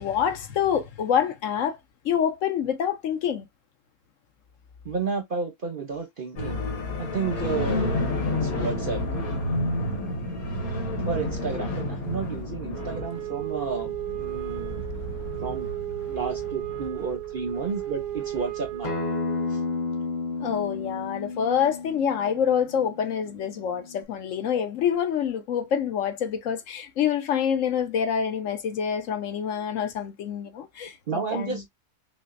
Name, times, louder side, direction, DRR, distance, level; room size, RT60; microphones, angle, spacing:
voice 1, 0.0-1.8 2.0-3.5 15.4-15.7 16.1-16.4 20.4-31.6, left 8 dB, 65° left, 1.0 m, -27 dB
voice 2, 4.8-6.6 7.0-8.1 8.4-9.0 11.1-14.8 15.4-15.7 16.1-19.0 19.5-19.6 31.1-31.7, right 5 dB, 50° right, 0.7 m, -32 dB
sound 1, 6.4-18.8, left 1 dB, 80° left, 1.5 m, -31 dB
Wind instrument woodwind instrument, 12.7-19.5, right 14 dB, 85° right, 1.1 m, -34 dB
Acoustic guitar, 18.8-24.0, left 4 dB, 40° left, 0.7 m, -32 dB
5.9 x 2.1 x 2.4 m
omnidirectional pair, 1.5 m